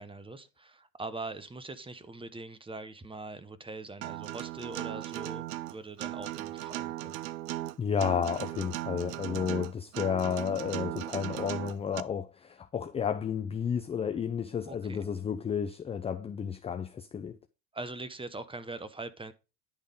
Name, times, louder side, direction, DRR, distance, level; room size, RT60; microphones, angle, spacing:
voice 1, 0.0-7.2 14.7-15.0 17.7-19.3, right 2 dB, 10° right, 0.8 m, -42 dB
Acoustic guitar, 4.0-12.0, right 16 dB, 80° right, 0.6 m, -37 dB
voice 2, 7.8-17.4, left 7 dB, 15° left, 0.3 m, -32 dB
10.5 x 3.6 x 5.2 m
hypercardioid pair, 90°, 47 cm